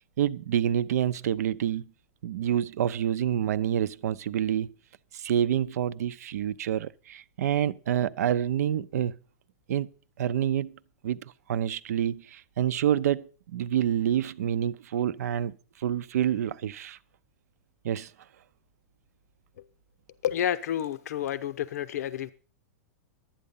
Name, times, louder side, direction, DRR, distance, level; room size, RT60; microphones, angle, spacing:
voice 1, 0.2-1.9 2.2-4.8 5.1-9.1 9.7-9.9 10.2-17.0 17.8-18.1, right 10 dB, 80° right, 0.6 m, -28 dB
voice 2, 20.2-22.3, left 10 dB, 80° left, 0.7 m, -30 dB
12.0 x 8.8 x 5.4 m
supercardioid pair, 150°, 9 cm